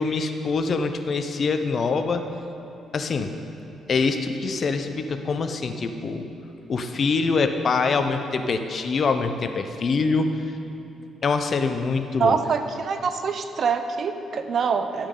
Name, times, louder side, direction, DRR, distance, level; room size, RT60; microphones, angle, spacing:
voice 1, 0.0-2.3 2.9-3.3 3.9-6.3 6.7-10.3 11.2-12.4, left 4 dB, 50° left, 8 dB, 0.6 m, -24 dB
voice 2, 12.2-15.1, right 5 dB, 55° right, 8 dB, 0.6 m, -25 dB
12.0 x 8.7 x 3.8 m, 2.8 s
cardioid pair, 90°, 0 cm